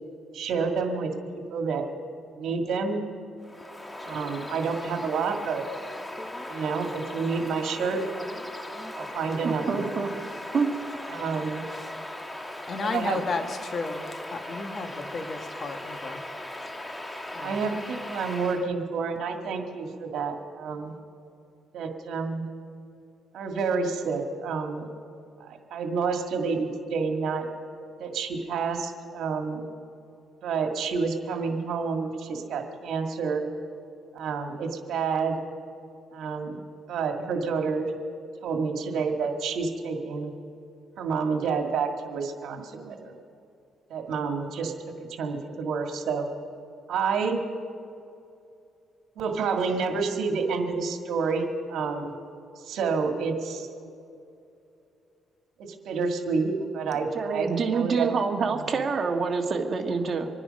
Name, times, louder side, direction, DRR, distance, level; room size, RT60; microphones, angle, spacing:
voice 1, 0.3-1.9 2.4-3.0 4.0-5.7 6.5-8.0 9.0-9.9 11.1-11.6 12.8-13.2 17.4-20.9 21.7-22.4 23.3-24.9 25.4-27.5 28.0-29.6 30.4-33.4 34.1-35.4 36.1-36.6 36.9-37.9 38.4-40.3 41.0-43.1 43.9-44.7 45.1-46.3 46.9-47.4 49.2-52.1 52.6-53.7 55.6-58.1, right 5 dB, 75° right, 4 dB, 2.0 m, -29 dB
Bird vocalization bird call bird song, 3.4-18.7, left 1 dB, 15° left, 1.3 m, -38 dB
voice 2, 9.4-10.1 10.5-10.7 57.1-60.3, right 5 dB, 45° right, 3 dB, 1.7 m, -26 dB
voice 3, 12.7-16.2 17.3-17.7 58.3-58.8, left 4 dB, 45° left, 6 dB, 1.5 m, -34 dB
25.5 x 10.0 x 5.4 m, 2.6 s
cardioid pair, 90°, 0 cm